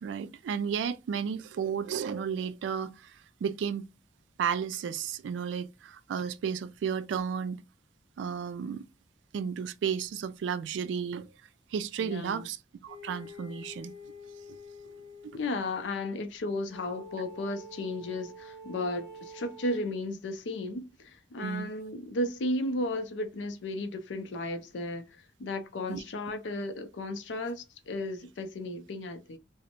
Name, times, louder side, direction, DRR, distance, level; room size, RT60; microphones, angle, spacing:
voice 1, 0.0-3.9 4.4-7.6 8.2-8.9 9.3-11.3 11.7-13.9 15.2-15.4 21.4-21.7 25.9-26.0, right 7 dB, 80° right, 0.3 m, -33 dB
voice 2, 12.0-12.5 15.3-25.1 25.4-29.4, left 1 dB, 85° left, 0.5 m, -34 dB
sound 1, 12.9-15.5 16.7-20.0, left 1 dB, 15° right, 0.8 m, -47 dB
2.6 x 2.0 x 2.8 m
head